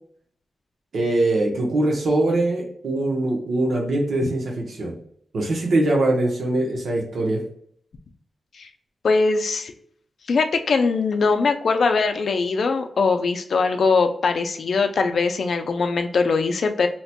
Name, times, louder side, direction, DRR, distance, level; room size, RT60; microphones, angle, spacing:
voice 1, 0.9-5.0 5.3-7.4, right 2 dB, 75° right, -1 dB, 0.9 m, -22 dB
voice 2, 9.0-9.7 10.3-16.9, left 4 dB, 65° left, 7 dB, 0.4 m, -21 dB
2.9 x 2.2 x 4.2 m, 0.64 s
wide cardioid pair, 125°, 0 cm